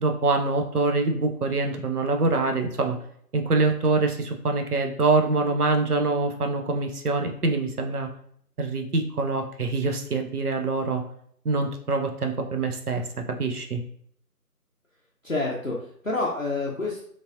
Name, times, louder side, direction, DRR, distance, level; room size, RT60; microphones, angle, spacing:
voice 1, 0.0-3.0 3.3-8.1 8.6-11.0 11.4-13.0 13.4-13.8, right 3 dB, 65° right, 4 dB, 0.6 m, -25 dB
voice 2, 15.2-17.0, left 3 dB, 55° left, -3 dB, 0.5 m, -28 dB
3.2 x 2.1 x 2.4 m, 0.65 s
figure-of-eight pair, 175°, 49 cm